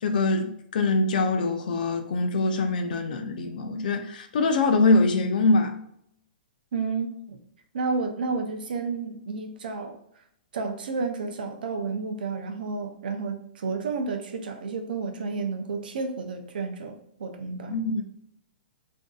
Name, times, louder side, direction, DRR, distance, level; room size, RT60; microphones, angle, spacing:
voice 1, 0.0-5.8 17.7-18.0, left 3 dB, 65° left, 0.4 m, -23 dB
voice 2, 6.7-7.4 7.7-10.0 10.5-17.8, right 4 dB, 75° right, 0.4 m, -31 dB
2.5 x 2.3 x 2.3 m
hypercardioid pair, 145°, 5 cm